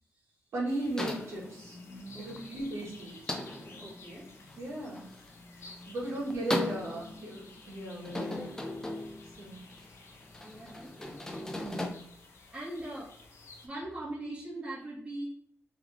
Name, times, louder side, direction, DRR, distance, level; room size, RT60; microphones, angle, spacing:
voice 1, 0.5-1.8 2.2-3.2 4.6-5.1 5.9-8.5 9.4-9.6 10.4-10.5 11.6-11.8, right 1 dB, 65° right, -5 dB, 1.6 m, -36 dB
sound 1, 0.7-13.7, left 3 dB, 65° left, 0.8 m, -54 dB
sound 2, 1.0-11.9, left 1 dB, 10° left, 0.5 m, -39 dB
voice 2, 2.1-2.5 3.8-4.3 7.9-8.0 10.4-11.2 12.4-15.3, right 1 dB, 20° right, -6 dB, 1.6 m, -42 dB
3.4 x 3.4 x 3.4 m, 0.69 s
wide cardioid pair, 120°, 5 cm